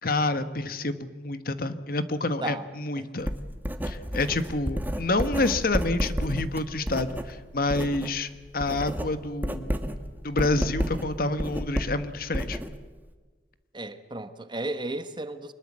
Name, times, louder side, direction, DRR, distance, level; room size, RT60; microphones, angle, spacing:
voice 1, 0.0-3.3 3.8-9.7 10.2-12.6, left 2 dB, 55° left, 1.4 m, -28 dB
Writing, 3.2-8.2 8.5-13.1, equal, 10° right, 1.6 m, -31 dB
voice 2, 13.7-15.5, right 2 dB, 25° right, 1.4 m, -34 dB
24.5 x 21.5 x 7.6 m
head